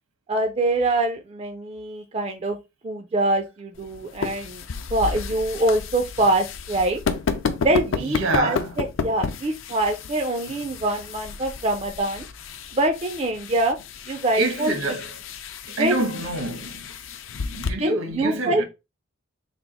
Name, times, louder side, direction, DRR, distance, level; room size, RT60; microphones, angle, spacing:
voice 1, 0.3-2.6 2.8-4.6 4.9-7.0 7.6-12.2 12.7-13.8 14.1-14.7 15.8-15.9 17.8-18.6, right 2 dB, 30° right, 0.3 m, -24 dB
sound 1, 3.8-17.7, left 5 dB, 70° left, 0.5 m, -32 dB
voice 2, 8.0-8.7 14.4-15.1 15.8-16.9 17.3-18.6, right 2 dB, 80° right, 1.1 m, -28 dB
3.4 x 2.4 x 4.0 m
head